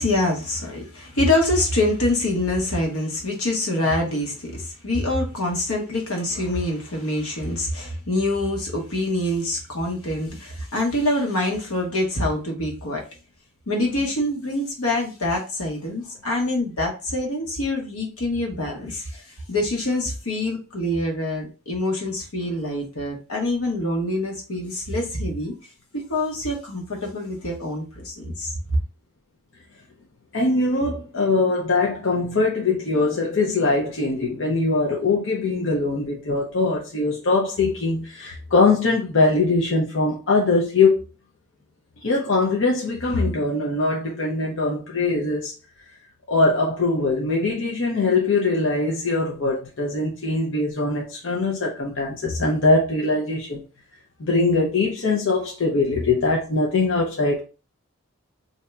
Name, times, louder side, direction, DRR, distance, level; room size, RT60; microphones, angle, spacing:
voice 1, 0.0-13.0 13.7-25.5 25.9-28.5, left 1 dB, 85° left, 1.1 m, -25 dB
voice 2, 30.3-41.0 42.0-45.5 46.3-53.6 54.2-57.4, left 3 dB, 60° left, 0.6 m, -22 dB
2.7 x 2.3 x 4.1 m
head